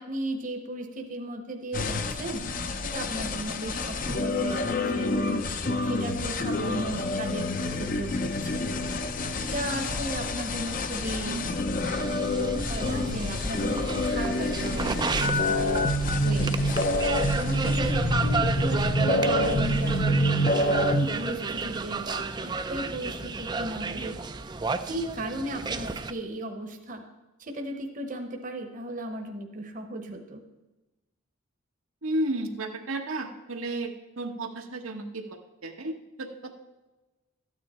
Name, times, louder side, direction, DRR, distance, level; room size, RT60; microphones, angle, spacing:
voice 1, 0.0-2.5 2.8-5.5 5.8-7.5 7.8-8.6 9.4-11.4 12.7-14.9 15.2-15.8 16.2-16.9 17.4-20.4 20.8-24.2 24.8-27.0 27.4-30.4, right 1 dB, 40° right, 4 dB, 1.0 m, -36 dB
sound 1, 1.7-21.1, left 1 dB, 40° left, 0.6 m, -27 dB
sound 2, 11.8-26.1, right 3 dB, 20° right, 0.4 m, -32 dB
voice 2, 32.0-35.2 35.6-36.5, right 1 dB, 85° right, 3 dB, 1.2 m, -33 dB
13.0 x 9.4 x 4.3 m, 1.1 s
head